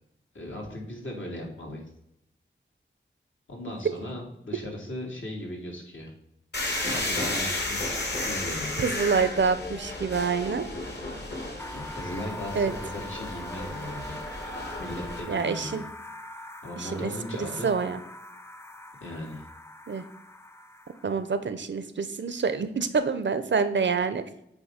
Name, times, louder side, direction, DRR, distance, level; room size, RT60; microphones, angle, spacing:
voice 1, 0.3-1.8 3.5-6.1 6.9-8.0 8.2-8.8 11.7-14.2 14.8-15.8 16.6-17.7 19.0-19.5, left 1 dB, 75° left, -2 dB, 2.0 m, -37 dB
sound 1, 6.5-15.2, left 2 dB, 55° left, 1.7 m, -33 dB
voice 2, 8.8-10.7 12.5-12.7 15.3-15.8 16.8-17.1 17.4-18.0 19.9-20.0 21.0-24.2, right 5 dB, 65° right, 11 dB, 0.6 m, -27 dB
sound 2, 11.6-21.3, left 1 dB, 15° left, 0.4 m, -43 dB
8.1 x 2.7 x 5.0 m, 0.78 s
wide cardioid pair, 65°, 20 cm